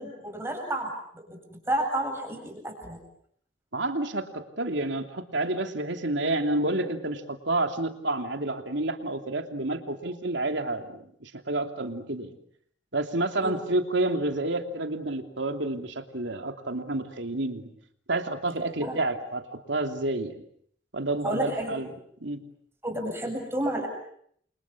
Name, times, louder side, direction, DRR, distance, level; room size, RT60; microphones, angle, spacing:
voice 1, 0.0-3.0 13.4-13.5 18.8-19.0 21.2-21.7 22.8-23.9, right 1 dB, 15° right, 3 dB, 8.0 m, -31 dB
voice 2, 3.7-12.4 12.9-17.7 18.1-20.4 20.9-21.9 22.2-22.4, right 2 dB, 75° right, 6 dB, 3.0 m, -29 dB
30.0 x 27.0 x 7.3 m, 0.67 s
head